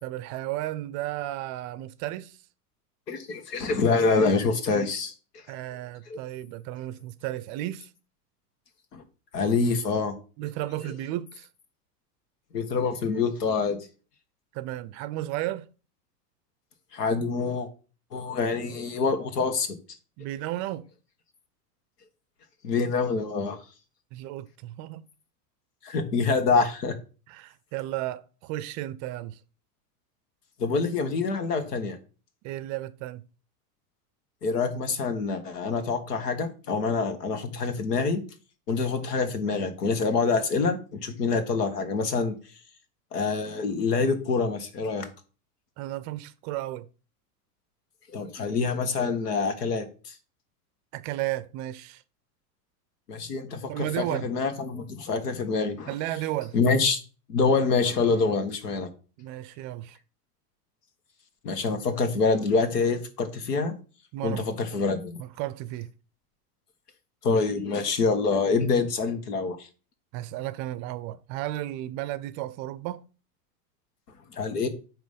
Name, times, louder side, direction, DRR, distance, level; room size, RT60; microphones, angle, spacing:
voice 1, 0.0-2.4 5.5-7.9 10.4-11.5 14.5-15.7 20.2-20.8 24.1-25.0 27.3-29.4 32.4-33.2 45.8-46.9 50.9-52.0 53.7-54.3 55.9-56.6 59.2-60.0 64.1-65.9 70.1-73.0, right 15 dB, 40° right, 0.5 m, -34 dB
voice 2, 3.1-5.1 6.1-6.2 8.9-9.0 9.3-10.2 12.5-13.8 16.9-17.7 18.1-19.8 22.6-23.6 25.8-27.0 30.6-32.0 34.4-38.2 38.7-42.3 43.1-45.1 48.1-50.1 53.1-55.9 56.5-57.0 57.3-58.9 61.4-63.7 64.2-65.2 67.2-69.6 74.3-74.7, left 4 dB, 85° left, 1.6 m, -26 dB
9.3 x 3.1 x 5.1 m
hypercardioid pair, 120°, 47 cm